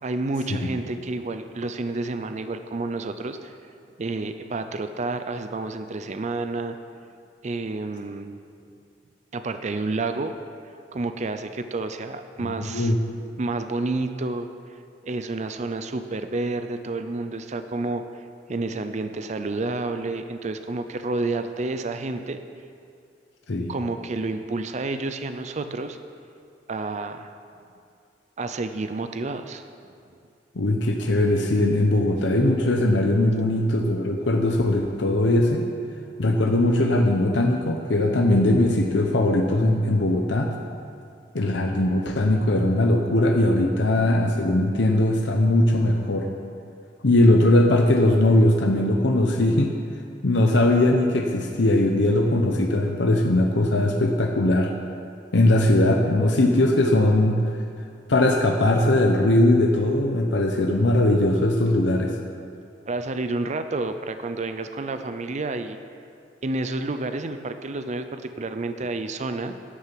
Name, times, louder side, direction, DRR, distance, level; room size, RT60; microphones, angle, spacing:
voice 1, 0.0-3.5 4.0-6.8 7.4-8.4 9.3-10.3 10.9-12.9 13.4-14.5 15.0-18.2 18.5-22.4 23.7-26.0 26.7-27.3 28.4-29.6 62.9-65.8 66.4-69.6, right 2 dB, 40° right, 9 dB, 0.5 m, -29 dB
voice 2, 12.4-13.0 23.5-23.8 30.5-35.6 36.2-40.5 41.3-46.3 47.0-49.7 50.2-54.7 55.3-57.4 58.1-62.1, left 1 dB, 80° left, 2 dB, 0.8 m, -20 dB
11.0 x 6.7 x 7.6 m, 2.4 s
head